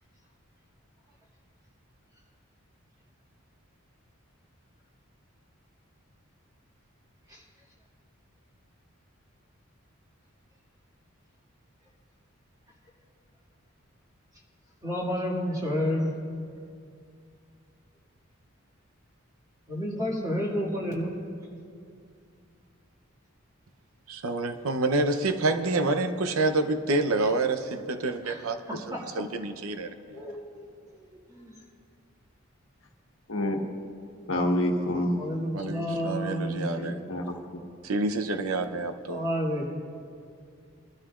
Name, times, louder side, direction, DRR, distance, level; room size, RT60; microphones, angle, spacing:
voice 1, 14.8-16.1 19.7-21.2 27.2-27.3 28.2-28.4 28.7-29.0 30.1-31.5 35.2-36.7 39.1-39.7, equal, 15° right, -3 dB, 2.2 m, -31 dB
voice 2, 24.1-30.2 35.5-37.0 37.8-39.2, right 2 dB, 90° right, 8 dB, 0.7 m, -28 dB
voice 3, 33.3-33.6 34.3-35.2 36.8-37.3, left 1 dB, 70° left, 2 dB, 1.3 m, -27 dB
23.5 x 12.5 x 2.5 m, 2.3 s
head